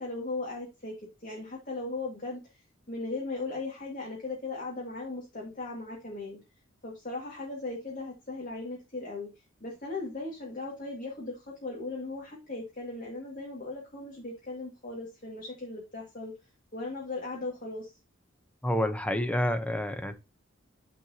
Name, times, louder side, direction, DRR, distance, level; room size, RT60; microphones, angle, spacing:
voice 1, 0.0-6.4 6.8-16.3 16.7-18.0, left 3 dB, 40° left, -1 dB, 1.9 m, -38 dB
voice 2, 18.6-20.1, left 1 dB, 5° left, 7 dB, 0.7 m, -28 dB
9.1 x 4.5 x 2.8 m, 0.27 s
head